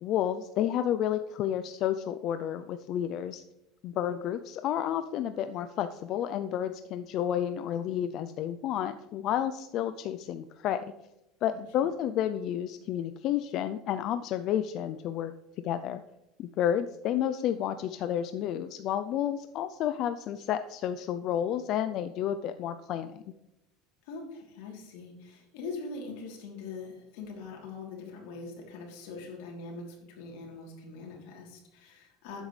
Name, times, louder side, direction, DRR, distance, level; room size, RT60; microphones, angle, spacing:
voice 1, 0.0-3.4 3.8-10.8 11.4-15.3 15.6-16.0 16.4-23.2, left 10 dB, 45° left, 10 dB, 0.4 m, -31 dB
voice 2, 11.5-11.9 24.0-32.4, left 3 dB, 80° left, 0 dB, 3.1 m, -42 dB
12.5 x 8.9 x 3.3 m, 0.91 s
cardioid pair, 165°, 0 cm